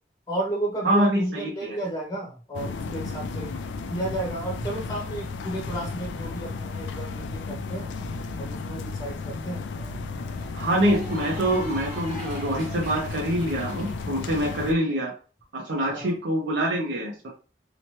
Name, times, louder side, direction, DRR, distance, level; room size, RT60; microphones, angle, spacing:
voice 1, 0.3-3.5 3.9-7.9 8.4-9.6 15.9-16.1, right 2 dB, 20° left, -2 dB, 0.7 m, -32 dB
voice 2, 0.8-1.8 10.5-15.1 15.5-17.3, right 1 dB, 85° right, -1 dB, 0.6 m, -25 dB
sound 1, 2.5-14.7, left 4 dB, 85° left, 0.3 m, -34 dB
Cheering / Applause, 8.5-13.9, right 1 dB, 25° right, 1.4 m, -43 dB
2.8 x 2.1 x 3.0 m, 0.36 s
head